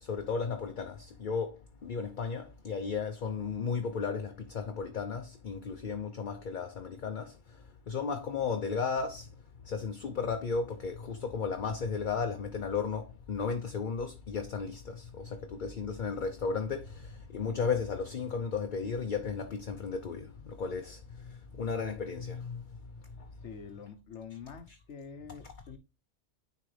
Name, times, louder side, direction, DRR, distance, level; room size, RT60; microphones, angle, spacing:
voice 1, 0.0-7.6 7.9-9.3 9.6-22.6 23.2-23.3, left 5 dB, 50° left, 0.8 m, -34 dB
voice 2, 23.4-25.8, left 6 dB, 85° left, 1.3 m, -46 dB
9.7 x 3.7 x 3.3 m
omnidirectional pair, 1.2 m